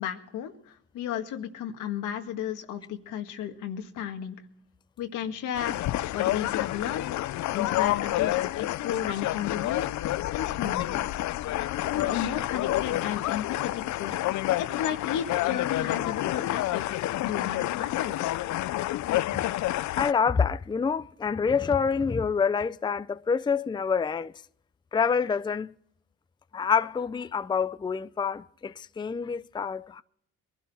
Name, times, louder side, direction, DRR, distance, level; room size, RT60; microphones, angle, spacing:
voice 1, 0.0-4.4 5.0-7.0 7.5-9.8 10.3-11.2 11.9-14.2 14.6-16.9 17.2-18.4, left 9 dB, 90° left, 1.8 m, -33 dB
sound 1, 5.5-20.1, left 15 dB, 70° left, 0.5 m, -29 dB
voice 2, 20.0-24.3 24.9-25.7 26.5-30.0, left 6 dB, 15° left, 0.5 m, -27 dB
22.5 x 11.5 x 4.2 m
cardioid pair, 90°, 30 cm